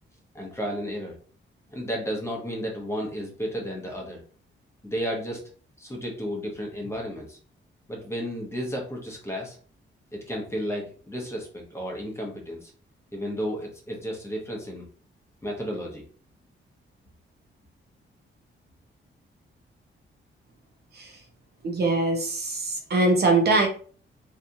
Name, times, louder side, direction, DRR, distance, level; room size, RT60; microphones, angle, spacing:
voice 1, 0.3-1.2 1.7-4.2 4.8-5.4 5.8-7.4 7.9-9.6 10.1-12.7 13.1-14.8 15.4-16.0, equal, 10° left, -1 dB, 0.8 m, -33 dB
voice 2, 21.6-23.7, right 2 dB, 50° right, 2 dB, 0.7 m, -22 dB
2.7 x 2.4 x 2.6 m, 0.42 s
wide cardioid pair, 140°, 21 cm